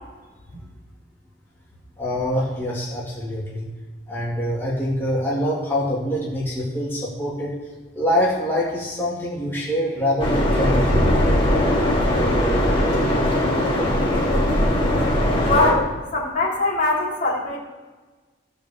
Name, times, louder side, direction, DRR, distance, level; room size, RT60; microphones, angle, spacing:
voice 1, 2.0-3.6 4.1-7.5 7.9-11.3, equal, 15° left, -7 dB, 2.6 m, -25 dB
sound 1, 10.2-15.7, left 1 dB, 30° left, 2.5 m, -19 dB
voice 2, 15.5-17.6, left 2 dB, 50° left, -4 dB, 3.5 m, -22 dB
15.0 x 5.4 x 7.2 m, 1.3 s
head